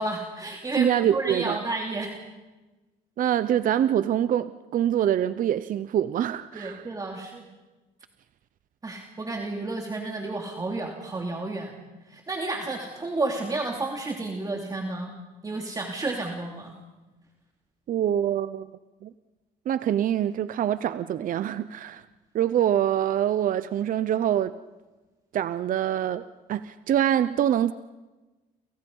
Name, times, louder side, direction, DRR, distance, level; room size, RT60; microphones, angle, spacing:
voice 1, 0.0-2.1 6.5-7.4 8.8-11.8 12.1-15.1 15.4-16.7, right 2 dB, 20° right, 1 dB, 3.0 m, -31 dB
voice 2, 0.8-1.6 3.2-6.8 17.9-18.7 19.0-19.1 19.7-22.0 22.3-24.5 25.3-27.7, right 10 dB, 55° right, 13 dB, 0.8 m, -25 dB
29.0 x 28.0 x 5.5 m, 1.2 s
cardioid pair, 110°, 17 cm